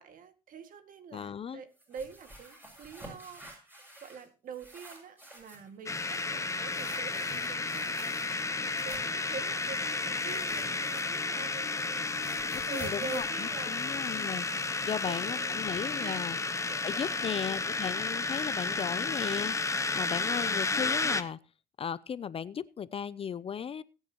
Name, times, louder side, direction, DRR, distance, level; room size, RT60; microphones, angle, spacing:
voice 1, 0.0-3.8 4.0-8.0 8.8-12.1 12.6-14.0 14.8-15.5 16.0-16.4 16.7-17.4, right 6 dB, 55° right, 8 dB, 2.0 m, -45 dB
voice 2, 1.1-1.6 12.5-14.5 14.8-16.4 16.8-21.4 21.8-23.8, left 7 dB, 35° left, 18 dB, 0.5 m, -36 dB
sound 1, 1.8-4.3 4.5-5.7 6.7-9.2 10.1-11.4 11.7-14.4, right 1 dB, 10° right, 6.7 m, -50 dB
sound 2, 5.9-21.2, left 3 dB, 15° left, 0.9 m, -32 dB
20.5 x 9.2 x 3.0 m, 0.34 s
cardioid pair, 110°, 17 cm